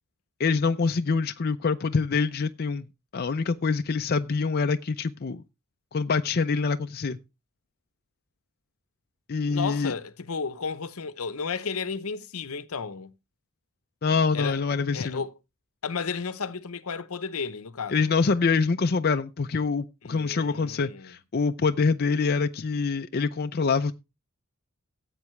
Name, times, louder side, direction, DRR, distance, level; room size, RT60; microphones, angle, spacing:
voice 1, 0.4-2.8 3.1-5.4 5.9-7.2 9.3-9.9 14.0-15.2 17.9-23.9, left 4 dB, 45° left, 0.5 m, -25 dB
voice 2, 9.5-13.1 14.3-14.6 14.9-15.3 15.8-18.1 20.0-21.1, left 5 dB, 75° left, 0.8 m, -33 dB
15.5 x 8.2 x 3.2 m
head